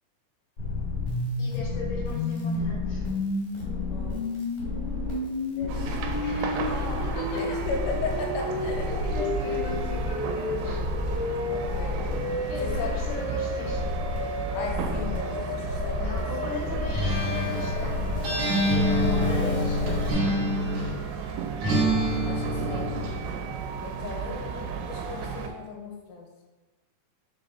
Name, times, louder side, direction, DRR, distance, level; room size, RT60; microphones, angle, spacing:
sound 1, 0.6-20.1, left 3 dB, 45° left, 2.5 m, -31 dB
voice 1, 1.4-3.0 6.2-7.6 8.9-10.8 12.5-13.9 16.0-19.8, left 3 dB, 65° left, -8 dB, 3.2 m, -38 dB
voice 2, 3.9-4.3 5.4-6.4 7.3-8.9 9.5-9.6 11.5-12.1 12.6-13.0 14.5-16.3 19.0-19.3 22.3-22.9 23.8-26.3, left 3 dB, 85° left, 1 dB, 3.2 m, -36 dB
sound 2, 5.7-25.5, right 6 dB, 85° right, 3.3 m, -33 dB
Acoustic guitar, 16.9-21.0 21.6-23.2, equal, 70° right, 1.7 m, -26 dB
6.9 x 4.0 x 4.1 m, 1.2 s
omnidirectional pair, 5.8 m